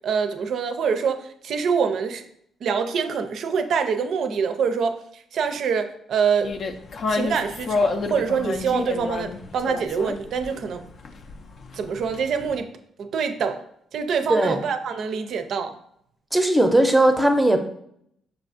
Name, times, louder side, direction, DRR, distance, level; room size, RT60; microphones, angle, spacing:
voice 1, 0.0-2.2 2.6-6.5 7.1-10.9 11.7-12.7 13.0-13.6 13.9-15.8, right 6 dB, 65° right, 8 dB, 0.4 m, -25 dB
sound 1, 6.4-12.6, left 4 dB, 55° left, 0.3 m, -30 dB
voice 2, 16.3-17.6, right 1 dB, 5° right, 6 dB, 0.5 m, -18 dB
5.8 x 2.4 x 2.5 m, 0.70 s
cardioid pair, 90°, 0 cm